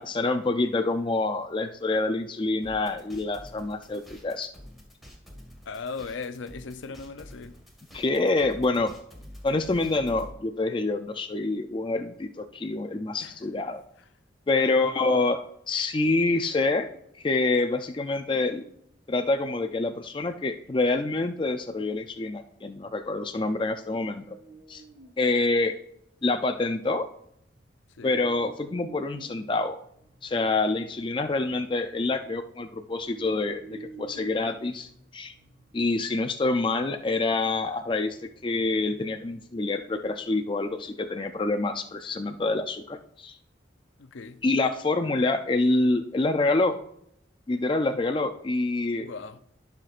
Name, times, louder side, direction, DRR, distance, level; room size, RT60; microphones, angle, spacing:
voice 1, 0.0-4.5 7.9-8.9 9.4-13.8 14.5-15.4 15.7-16.9 17.2-18.6 19.1-24.4 24.7-24.8 25.2-25.8 26.2-27.1 28.0-29.8 30.2-34.9 35.1-35.3 35.7-38.2 38.4-43.3 44.4-46.8 47.5-49.1, left 2 dB, 25° left, 0.4 m, -26 dB
sound 1, 2.6-10.3, equal, ahead, 1.6 m, -47 dB
voice 2, 5.7-7.5 13.2-13.4 14.6-14.9 28.0-28.1 44.0-44.4 49.0-49.4, left 4 dB, 80° left, 0.5 m, -38 dB
sound 2, 20.6-22.1 23.8-25.3 25.6-25.7 26.2-26.7 27.2-39.0, right 3 dB, 55° right, 1.2 m, -51 dB
15.5 x 5.9 x 2.5 m
head